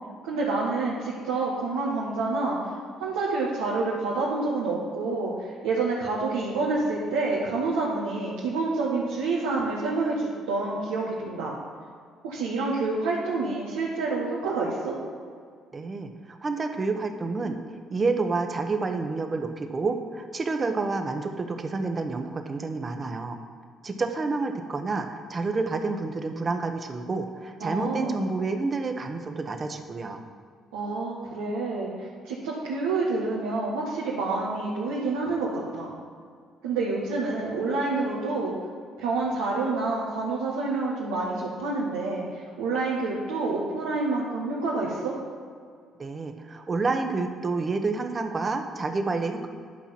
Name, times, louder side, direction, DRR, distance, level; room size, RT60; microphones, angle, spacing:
voice 1, 0.2-2.6 3.0-11.5 12.2-14.9 27.6-28.2 30.7-35.9 36.6-38.5 39.0-45.1, right 3 dB, 80° right, -6 dB, 1.6 m, -28 dB
voice 2, 15.7-17.6 17.9-23.4 23.8-30.2 46.0-49.5, right 3 dB, 40° right, 6 dB, 1.3 m, -29 dB
11.0 x 5.7 x 6.0 m, 2.1 s
hypercardioid pair, 50°, 0 cm